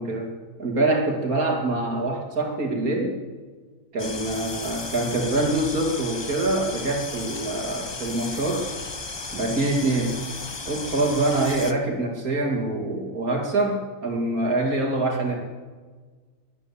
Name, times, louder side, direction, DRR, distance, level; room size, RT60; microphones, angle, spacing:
voice 1, 0.0-3.2 3.9-8.7 9.3-10.2 10.7-15.4, right 2 dB, 80° right, 0 dB, 2.9 m, -25 dB
sound 1, 4.0-11.7, left 3 dB, 25° left, 0.7 m, -35 dB
22.5 x 9.0 x 7.1 m, 1.4 s
omnidirectional pair, 1.5 m